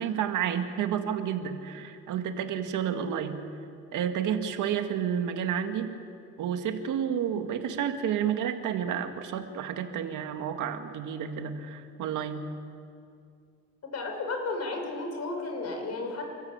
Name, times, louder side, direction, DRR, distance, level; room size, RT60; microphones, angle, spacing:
voice 1, 0.0-3.4 3.9-6.0 6.4-12.4, right 8 dB, 85° right, 7 dB, 1.9 m, -30 dB
voice 2, 13.9-16.2, left 3 dB, 60° left, 3 dB, 5.8 m, -33 dB
29.5 x 14.5 x 8.8 m, 2.4 s
cardioid pair, 90°, 30 cm